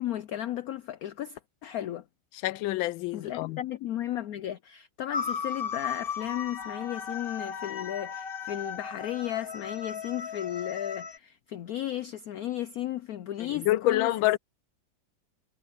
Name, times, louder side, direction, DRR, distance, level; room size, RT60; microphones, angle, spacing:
voice 1, 0.0-2.0 3.1-14.1, left 12 dB, 75° left, 0.8 m, -34 dB
voice 2, 2.4-3.6 13.4-14.4, left 15 dB, 90° left, 1.4 m, -27 dB
sound 1, 5.1-11.2, left 6 dB, 40° left, 1.0 m, -36 dB
omnidirectional pair, 2.1 m